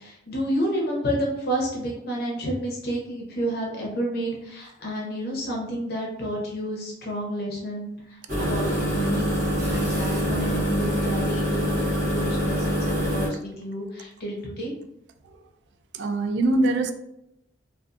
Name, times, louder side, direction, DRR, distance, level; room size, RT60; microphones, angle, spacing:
voice 1, 0.0-9.3 9.7-14.7, equal, 60° left, 0.7 m, -30 dB
sound 1, 8.3-13.3, equal, 50° right, 0.9 m, -25 dB
voice 2, 16.0-16.9, right 2 dB, 65° right, 0.3 m, -22 dB
2.5 x 2.3 x 2.4 m
head